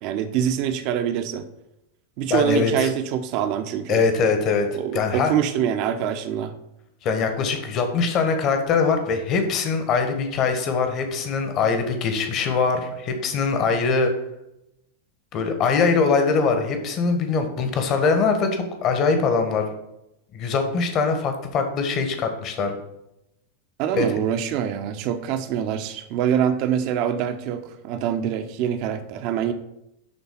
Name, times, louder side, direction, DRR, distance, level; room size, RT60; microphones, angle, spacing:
voice 1, 0.0-1.5 2.2-4.0 4.7-6.5 23.8-29.5, right 9 dB, 45° right, 8 dB, 0.9 m, -25 dB
voice 2, 2.3-2.9 3.9-4.7 4.9-5.3 7.0-14.1 15.3-19.7 20.3-22.7 23.9-24.1, left 4 dB, 35° left, 6 dB, 1.5 m, -22 dB
11.5 x 3.9 x 5.6 m, 0.86 s
figure-of-eight pair, 90°, 0 cm